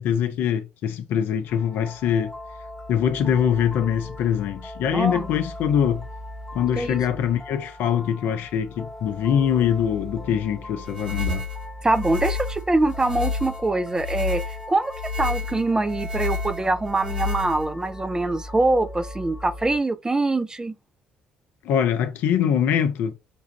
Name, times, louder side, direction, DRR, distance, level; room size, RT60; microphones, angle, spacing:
voice 1, 0.0-2.3 2.9-6.1 6.5-11.5 21.6-23.1, left 8 dB, 55° left, 0.6 m, -23 dB
sound 1, 1.5-19.8, left 1 dB, 10° left, 1.0 m, -39 dB
voice 2, 4.9-5.2 6.8-7.0 11.8-14.4 14.7-14.9 15.2-20.7, right 2 dB, 15° right, 0.4 m, -23 dB
sound 2, 10.8-17.9, left 4 dB, 85° right, 0.9 m, -30 dB
6.0 x 2.4 x 3.0 m
figure-of-eight pair, 50°, 4 cm